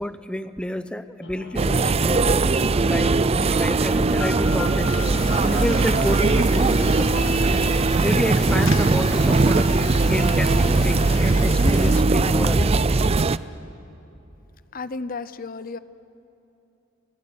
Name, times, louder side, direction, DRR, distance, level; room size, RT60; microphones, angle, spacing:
voice 1, 0.0-2.2 2.9-3.2 3.5-5.0 5.4-7.2 8.0-12.8, equal, 5° left, 11 dB, 0.8 m, -28 dB
sound 1, 1.2-6.4, left 4 dB, 60° left, 1.5 m, -38 dB
sound 2, 1.6-13.4, right 3 dB, 30° right, 0.5 m, -20 dB
sound 3, 5.0-12.0, left 4 dB, 80° left, 1.0 m, -34 dB
voice 2, 14.7-15.8, left 4 dB, 45° left, 14 dB, 0.7 m, -33 dB
29.5 x 16.0 x 9.8 m, 2.8 s
head